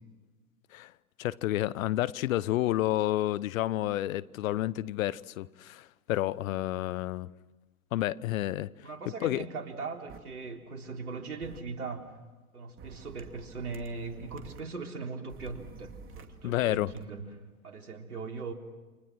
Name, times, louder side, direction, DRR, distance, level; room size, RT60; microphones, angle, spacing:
voice 1, 1.2-7.3 7.9-8.7 9.2-9.5 16.4-16.9, left 15 dB, 65° left, 1.0 m, -30 dB
voice 2, 8.8-12.1 12.5-17.2 17.6-18.5, right 4 dB, 90° right, 3.8 m, -39 dB
sound 1, 10.1-10.2 11.4-11.6 12.8-14.6 15.3-17.0, right 5 dB, 30° right, 2.7 m, -49 dB
29.5 x 27.5 x 6.2 m
hypercardioid pair, 100°, 43 cm